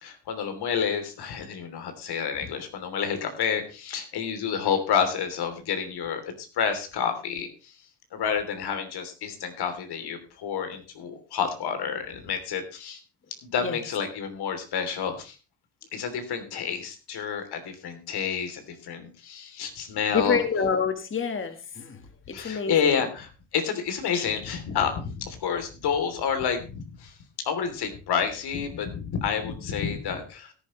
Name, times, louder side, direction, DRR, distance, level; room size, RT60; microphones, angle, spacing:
voice 1, 0.0-7.5 8.1-13.0 13.4-15.4 15.9-20.4 22.3-27.1 27.4-30.5, left 7 dB, 75° left, 7 dB, 3.2 m, -29 dB
voice 2, 20.1-22.0 22.3-23.0, left 6 dB, 30° left, 8 dB, 1.7 m, -27 dB
16.5 x 10.5 x 3.2 m, 0.32 s
cardioid pair, 100°, 39 cm